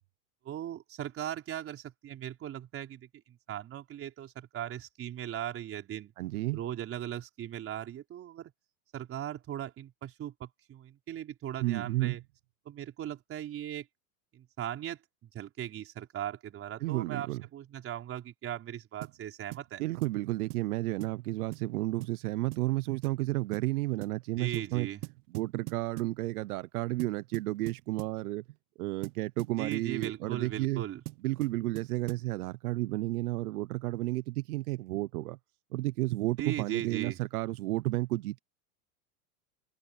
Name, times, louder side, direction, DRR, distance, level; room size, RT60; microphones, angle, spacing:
voice 1, 0.4-6.1 6.5-8.5 8.9-12.2 12.7-13.9 14.3-19.8 24.4-25.0 29.6-31.0 36.4-37.2, right 11 dB, 30° right, 4.4 m, -38 dB
voice 2, 6.2-6.6 11.6-12.2 16.8-17.4 19.8-24.9 25.3-28.4 28.8-30.8 31.2-35.4 35.7-38.4, right 19 dB, 85° right, 0.7 m, -32 dB
sound 1, 19.0-19.2 19.5-19.7 20.0-20.2 20.5-20.7 21.0-21.2 21.5-21.7 22.0-22.2 22.5-22.7 23.0-23.2 23.5-23.7 24.0-24.2 24.5-24.7 25.0-26.2 27.0-28.2 29.0-30.2 31.1-32.3, right 27 dB, 55° right, 1.0 m, -43 dB
supercardioid pair, 135°, 43 cm